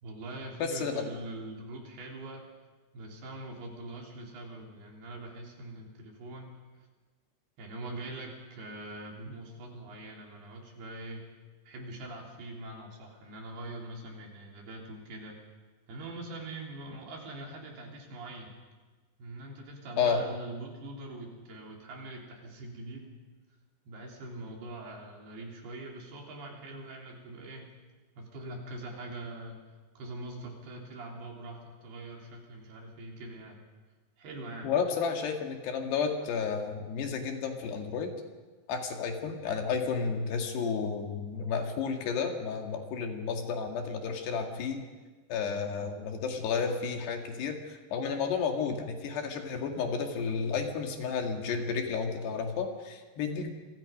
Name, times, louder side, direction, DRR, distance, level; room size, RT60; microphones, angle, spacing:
voice 1, 0.0-2.4 2.9-6.6 7.6-11.2 11.7-15.4 15.9-18.6 19.2-23.2 23.9-27.7 28.2-29.6 30.0-33.6 34.2-34.7, right 2 dB, 65° right, 0 dB, 5.4 m, -43 dB
voice 2, 0.6-1.0 20.0-20.2 34.6-38.1 38.7-44.8 45.3-53.5, left 5 dB, 70° left, 3 dB, 4.1 m, -32 dB
29.0 x 23.5 x 5.3 m, 1.4 s
omnidirectional pair, 5.0 m